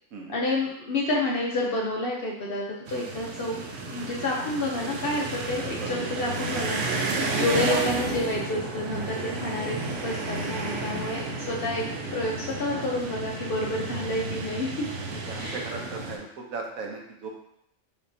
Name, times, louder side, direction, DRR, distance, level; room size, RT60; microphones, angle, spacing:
voice 1, 0.3-3.6 3.9-9.8 10.0-11.9 12.1-14.9 15.3-15.7, left 2 dB, 55° left, -3 dB, 0.7 m, -29 dB
sound 1, 2.9-16.2, right 3 dB, 65° right, 0.9 m, -32 dB
voice 2, 12.5-12.9 15.3-17.3, right 4 dB, 85° right, 0 dB, 1.2 m, -37 dB
5.3 x 2.8 x 2.6 m, 0.76 s
omnidirectional pair, 1.4 m